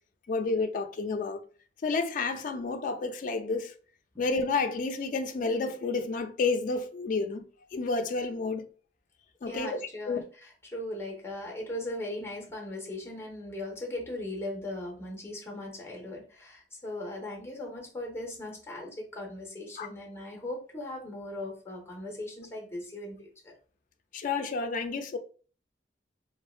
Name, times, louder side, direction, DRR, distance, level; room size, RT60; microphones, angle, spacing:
voice 1, 0.3-1.4 1.8-3.8 4.2-7.4 7.7-8.7 9.4-9.8 10.1-10.2 19.8-19.9 24.1-25.2, left 4 dB, 45° left, 0.3 m, -30 dB
voice 2, 9.5-23.5, left 1 dB, 15° left, 0.7 m, -38 dB
3.4 x 2.1 x 2.3 m
head